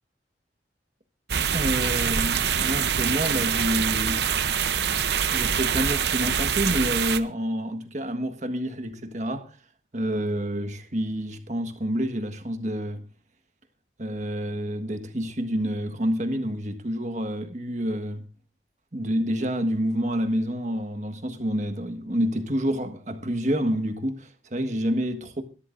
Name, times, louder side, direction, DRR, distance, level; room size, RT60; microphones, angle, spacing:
sound 1, 1.3-7.2, right 7 dB, 70° right, 0.8 m, -25 dB
voice 1, 1.5-4.3 5.3-9.5 9.9-13.0 14.0-18.3 18.9-25.4, equal, 40° right, 1.5 m, -28 dB
22.0 x 13.0 x 2.6 m
head